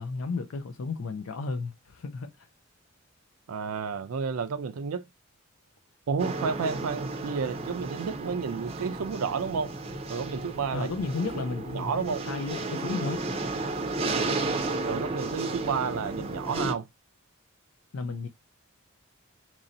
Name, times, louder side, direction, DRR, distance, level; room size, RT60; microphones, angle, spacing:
voice 1, 0.0-2.5 10.7-13.2 17.9-18.3, left 4 dB, 70° left, 0.4 m, -33 dB
voice 2, 3.5-5.0 6.1-9.7 10.1-10.9 11.7-12.2 14.8-16.9, right 6 dB, 85° right, 0.4 m, -31 dB
sound 1, 6.2-16.7, right 2 dB, 30° right, 0.6 m, -33 dB
3.0 x 2.7 x 3.8 m
head